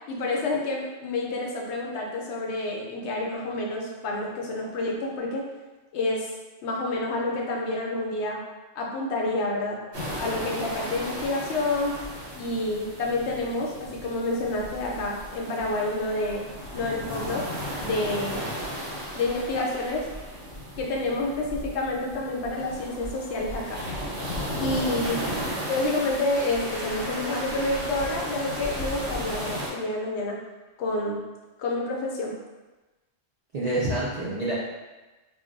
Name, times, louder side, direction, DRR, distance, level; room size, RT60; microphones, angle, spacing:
voice 1, 0.1-5.5 5.9-6.3 6.6-8.4 8.8-9.8 10.2-12.0 12.4-16.4 16.7-17.5 17.8-18.5 19.2-20.1 20.8-23.8 24.6-25.2 25.7-30.4 30.8-31.2 31.6-32.4, left 2 dB, 75° left, -1 dB, 0.8 m, -28 dB
sound 1, 9.9-29.7, equal, 75° right, 1.2 m, -35 dB
voice 2, 33.5-34.5, right 2 dB, 55° right, -8 dB, 0.4 m, -28 dB
2.4 x 2.2 x 3.7 m, 1.2 s
omnidirectional pair, 1.2 m